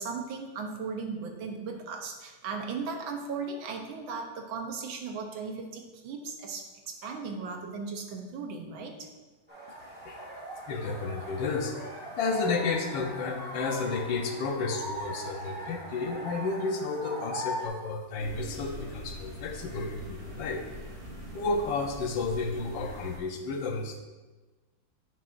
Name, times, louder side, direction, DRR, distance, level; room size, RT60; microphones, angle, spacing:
voice 1, 0.0-9.1, right 4 dB, 85° right, 3 dB, 1.7 m, -37 dB
sound 1, 9.5-17.7, right 1 dB, 5° right, 1.3 m, -39 dB
voice 2, 10.5-20.6 21.3-24.0, left 4 dB, 75° left, 4 dB, 1.5 m, -32 dB
sound 2, 18.2-23.2, equal, 35° right, 1.1 m, -43 dB
9.4 x 6.0 x 2.6 m, 1.2 s
omnidirectional pair, 2.1 m